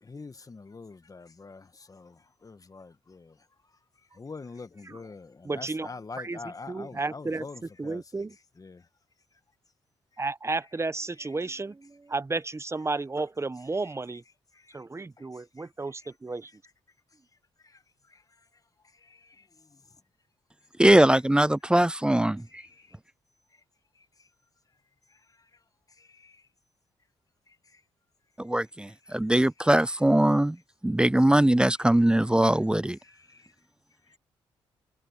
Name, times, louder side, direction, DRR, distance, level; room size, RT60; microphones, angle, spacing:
voice 1, 0.0-3.4 4.1-8.0 8.6-8.9 14.5-14.8 15.2-15.7 17.6-17.8 18.1-18.2 18.9-19.8 22.5-23.0 23.9-24.3 25.4-25.5 26.0-26.5 29.1-29.2 33.0-33.5 34.1-34.2, left 4 dB, 35° left, 1.5 m, -46 dB
voice 2, 5.4-6.4 6.7-7.4 7.8-8.4 10.2-14.2 14.7-16.5, right 3 dB, 25° right, 1.0 m, -33 dB
voice 3, 20.8-22.6 28.4-30.6 30.8-33.0, right 1 dB, 10° right, 0.4 m, -21 dB
supercardioid pair, 55°, 11 cm